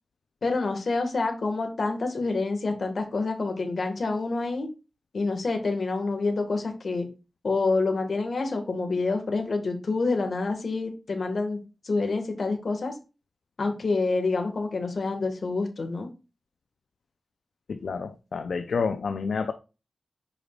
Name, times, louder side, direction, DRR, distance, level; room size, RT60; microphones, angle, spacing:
voice 1, 0.4-4.7 5.1-7.1 7.4-12.9 13.6-16.1, left 3 dB, 65° left, 1.7 m, -27 dB
voice 2, 17.7-19.5, left 5 dB, 90° left, 0.6 m, -29 dB
8.3 x 5.2 x 2.4 m
wide cardioid pair, 85°, 0 cm